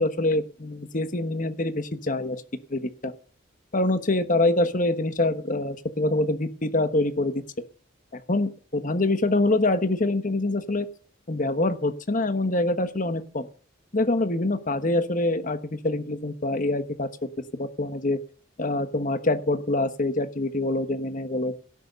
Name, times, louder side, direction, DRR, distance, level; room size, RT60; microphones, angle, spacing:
voice 1, 0.0-2.4 2.7-3.1 3.7-7.4 8.1-10.9 11.3-13.5 13.9-17.1 17.5-18.2 18.6-21.5, left 2 dB, 40° left, 9 dB, 1.2 m, -25 dB
17.0 x 6.6 x 6.9 m, 0.41 s
head